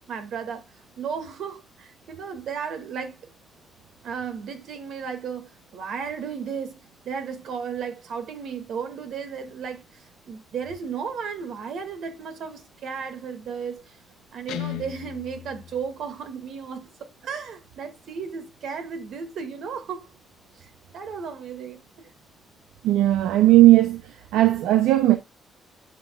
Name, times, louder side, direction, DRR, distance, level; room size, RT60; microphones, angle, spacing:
voice 1, 0.1-0.6 1.0-3.2 4.0-6.8 7.0-14.0 14.3-20.1 20.5-22.1, right 6 dB, 70° right, 2.0 m, -34 dB
Guitar, 14.5-16.5, left 13 dB, 85° left, 1.1 m, -37 dB
voice 2, 22.8-24.0 24.3-25.2, right 15 dB, 90° right, 0.6 m, -16 dB
11.5 x 5.4 x 2.3 m
cardioid pair, 90°, 0 cm